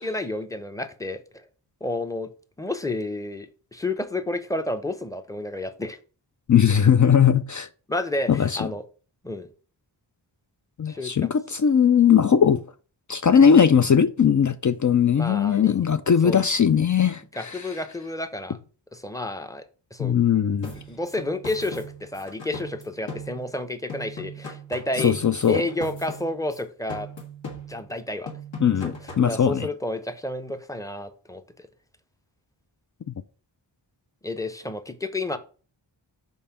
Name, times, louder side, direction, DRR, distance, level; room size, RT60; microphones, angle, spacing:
voice 1, 0.0-1.4 1.8-2.3 2.6-6.0 7.9-8.8 9.2-9.5 10.9-11.3 15.1-16.0 16.2-16.4 17.3-18.6 18.9-19.7 19.9-20.1 20.9-25.1 25.5-27.1 27.7-28.3 28.8-28.9 29.3-31.7 34.2-35.4, left 2 dB, 5° left, 0.7 m, -30 dB
voice 2, 6.5-7.7 8.3-8.7 10.8-12.6 13.1-17.7 20.0-20.7 25.0-25.6 28.6-29.7 33.1-33.2, left 7 dB, 40° left, 0.4 m, -19 dB
sound 1, 20.6-23.6 23.9-26.6 26.9-28.0 28.3-29.3, equal, 70° left, 1.8 m, -39 dB
5.5 x 4.3 x 5.8 m
wide cardioid pair, 70°, 47 cm